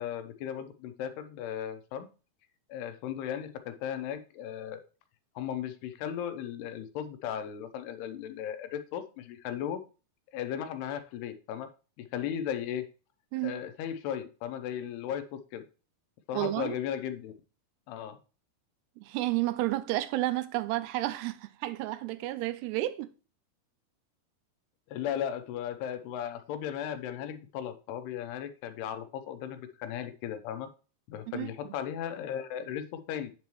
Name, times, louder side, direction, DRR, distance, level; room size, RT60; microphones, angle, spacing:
voice 1, 0.0-2.1 2.7-4.8 5.4-9.8 10.3-11.7 12.0-12.9 13.4-15.6 16.3-17.3 17.9-18.2 24.9-30.7 31.1-33.3, left 9 dB, 80° left, 2.7 m, -36 dB
voice 2, 16.3-16.8 19.0-23.1 31.3-31.5, right 16 dB, 85° right, 2.7 m, -31 dB
8.4 x 6.9 x 3.0 m
omnidirectional pair, 4.8 m